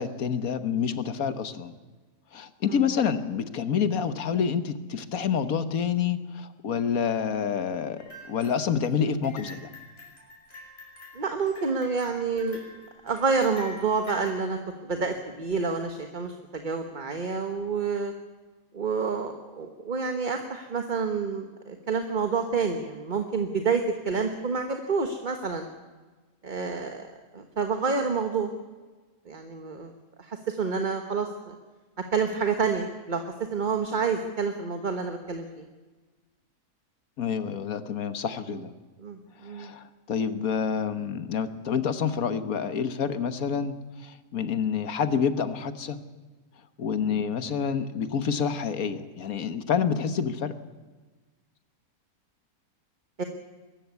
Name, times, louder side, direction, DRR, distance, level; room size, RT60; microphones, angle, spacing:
voice 1, 0.0-1.7 2.3-9.7 37.2-38.7 39.4-43.7 44.0-46.0 46.8-50.5, left 7 dB, 65° left, 11 dB, 1.6 m, -28 dB
sound 1, 8.0-14.4, left 1 dB, 40° left, 6.1 m, -47 dB
voice 2, 11.1-12.6 13.0-14.6 14.9-18.1 18.7-25.7 26.4-27.0 27.3-28.5 29.3-29.9 30.2-31.5 32.1-35.6 39.0-39.7 47.0-47.3 53.2-53.3, right 5 dB, 35° right, 5 dB, 1.3 m, -28 dB
22.5 x 14.0 x 9.5 m, 1.3 s
omnidirectional pair, 1.6 m